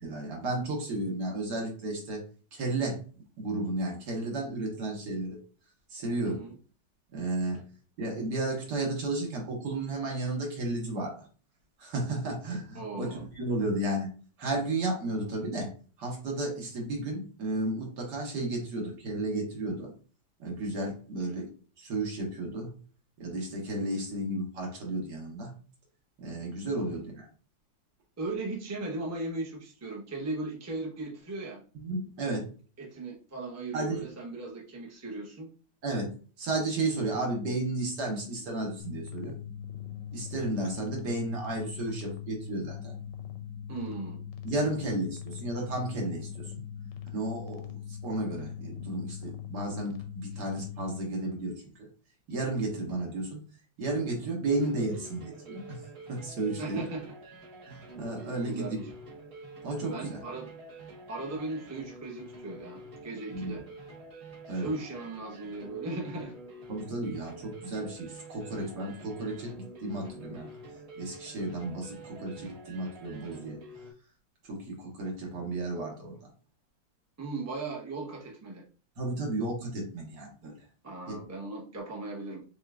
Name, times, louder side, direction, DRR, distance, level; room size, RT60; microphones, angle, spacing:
voice 1, 0.0-2.2 2.5-3.0 3.4-5.4 5.9-6.5 7.1-7.6 8.0-11.2 11.8-14.1 14.4-15.7 16.0-19.9 20.4-21.5 21.8-22.7 23.2-25.5 26.2-27.3 31.8-32.4 33.7-34.0 35.8-36.1 36.4-39.4 40.1-43.0 44.4-46.6 47.1-51.9 52.3-53.4 53.8-55.8 56.1-56.8 57.7-58.8 59.6-60.2 63.3-63.6 64.5-64.7 66.7-70.5 71.0-73.6 74.4-76.3 79.0-80.5 81.1-81.2, right 2 dB, 65° right, -1 dB, 1.8 m, -33 dB
voice 2, 6.2-6.5 12.7-13.2 28.2-31.6 32.8-35.5 43.7-44.2 56.6-57.0 58.4-58.9 59.9-60.5 61.1-63.6 64.5-66.3 77.2-78.6 80.8-82.4, right 2 dB, 15° right, -3 dB, 0.6 m, -37 dB
sound 1, 38.8-51.0, left 9 dB, 80° left, 1.3 m, -41 dB
sound 2, 54.5-73.9, right 1 dB, 40° right, 1.2 m, -47 dB
6.3 x 2.5 x 2.4 m, 0.39 s
omnidirectional pair, 2.0 m